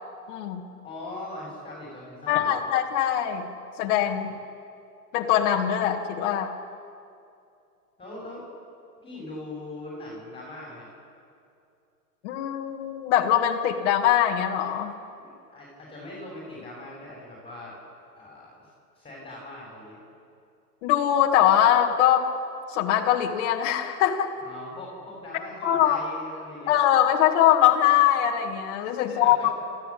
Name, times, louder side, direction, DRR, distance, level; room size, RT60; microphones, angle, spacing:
voice 1, 0.3-0.7 2.3-3.5 3.8-4.3 5.1-6.5 12.2-14.9 20.8-22.3 22.7-24.3 25.6-26.0 26.7-29.5, left 11 dB, 50° left, 0 dB, 2.0 m, -22 dB
voice 2, 0.8-2.7 8.0-8.4 9.0-10.9 15.2-17.8 18.1-20.0 24.4-26.7 29.1-29.5, left 2 dB, 10° left, -4 dB, 6.4 m, -41 dB
28.5 x 14.5 x 8.6 m, 2.6 s
hypercardioid pair, 125°, 47 cm